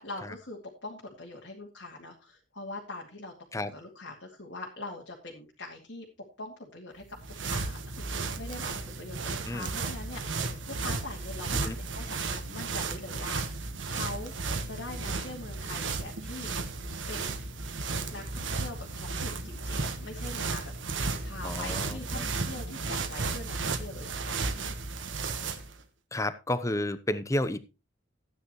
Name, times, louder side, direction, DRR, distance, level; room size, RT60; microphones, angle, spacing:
voice 1, 0.0-6.1 6.4-16.5 17.1-17.4 18.1-20.9 21.2-24.4, left 2 dB, 70° left, -2 dB, 2.3 m, -43 dB
sound 1, 7.0-25.8, right 4 dB, 75° right, 1.4 m, -34 dB
voice 2, 21.4-22.3 26.1-27.6, left 1 dB, 15° left, 14 dB, 0.7 m, -31 dB
14.0 x 9.6 x 3.1 m, 0.28 s
head